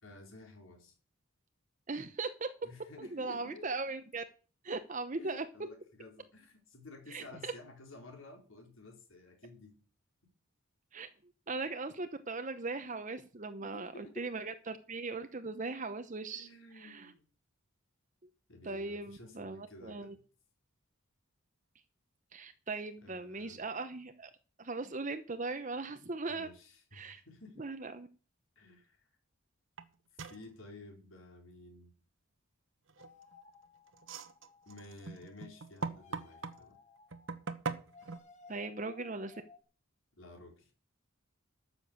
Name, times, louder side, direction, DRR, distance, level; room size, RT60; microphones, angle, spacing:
voice 1, 0.0-0.9 2.6-3.7 5.2-9.8 13.6-14.3 16.3-17.2 18.5-20.2 23.0-23.6 26.3-27.7 28.6-29.0 30.3-31.9 34.7-36.8 40.2-40.7, left 2 dB, 70° left, 2 dB, 4.4 m, -53 dB
voice 2, 1.9-2.5 3.0-4.2 4.6-5.4 7.1-7.5 10.9-11.1 11.5-16.5 16.7-17.1 18.6-20.2 22.3-24.3 24.6-26.5 26.9-27.2 27.6-28.1 38.5-39.4, right 3 dB, 35° right, 9 dB, 0.8 m, -39 dB
sound 1, 29.8-29.9 30.2-30.5 32.9-33.3 33.9-36.6 37.1-38.2, right 4 dB, 65° right, 1.1 m, -40 dB
sound 2, 33.0-39.6, left 4 dB, 35° left, 1.5 m, -59 dB
12.5 x 7.0 x 6.9 m, 0.38 s
head